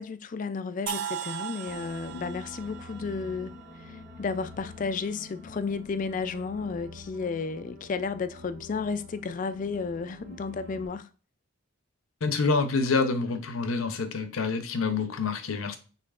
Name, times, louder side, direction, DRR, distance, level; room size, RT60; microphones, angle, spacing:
voice 1, 0.0-11.1, left 4 dB, 40° left, 0.3 m, -33 dB
sound 1, 0.9-4.8, right 10 dB, 60° right, 0.4 m, -38 dB
sound 2, 1.7-10.9, left 2 dB, 35° right, 1.5 m, -46 dB
voice 2, 12.2-15.8, left 4 dB, 80° left, 0.7 m, -27 dB
5.6 x 3.8 x 2.4 m
head